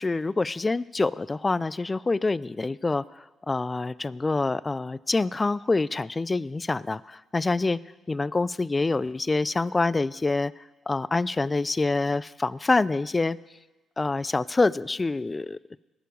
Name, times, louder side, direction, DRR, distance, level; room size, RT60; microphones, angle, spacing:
voice 1, 0.0-7.8 8.1-10.5 10.9-13.4 14.0-15.8, left 3 dB, 20° left, 19 dB, 0.3 m, -26 dB
19.5 x 6.8 x 5.3 m, 1.1 s
cardioid pair, 90°, 0 cm